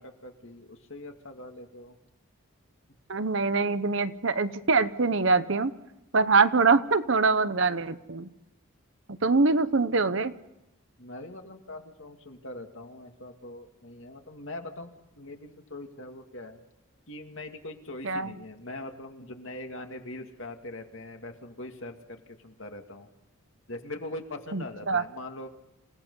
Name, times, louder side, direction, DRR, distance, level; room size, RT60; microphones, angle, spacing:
voice 1, 0.0-2.0 11.0-16.6 17.1-23.1 23.7-25.5, left 2 dB, 60° left, 4 dB, 2.3 m, -42 dB
voice 2, 3.1-5.7 6.1-8.3 9.1-10.3 18.0-18.3 24.5-25.0, right 4 dB, 60° right, 12 dB, 0.9 m, -24 dB
28.0 x 17.5 x 5.6 m, 0.96 s
head